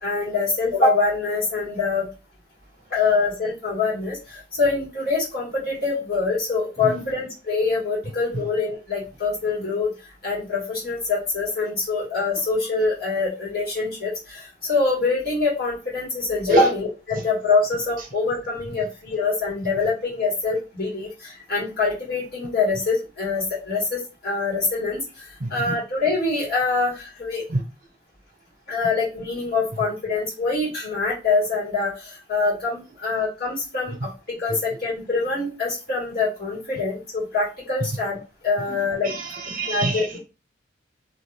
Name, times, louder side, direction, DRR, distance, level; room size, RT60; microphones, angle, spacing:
voice 1, 0.0-2.1 2.9-9.9 10.2-25.0 25.5-27.4 28.7-34.1 34.4-38.2 38.4-39.1 39.7-40.1, left 3 dB, 55° left, 1.8 m, -24 dB
voice 2, 25.4-25.8 27.5-27.6 38.7-40.2, right 1 dB, 45° right, 0.8 m, -26 dB
2.9 x 2.5 x 3.2 m
head